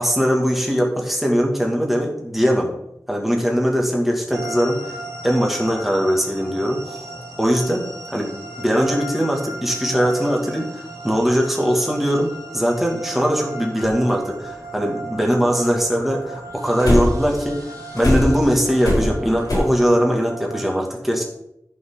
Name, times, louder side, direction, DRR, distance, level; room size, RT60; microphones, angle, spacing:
voice 1, 0.0-2.7 3.1-5.0 5.2-6.8 7.4-7.8 8.1-17.6 17.9-21.2, equal, 5° right, -1 dB, 2.3 m, -20 dB
sound 1, 4.3-20.6, right 2 dB, 70° right, 2.7 m, -36 dB
sound 2, 13.8-13.9 16.8-17.3 18.0-19.6, left 1 dB, 90° left, 3.9 m, -20 dB
13.5 x 5.6 x 3.9 m, 0.82 s
wide cardioid pair, 55°, 6 cm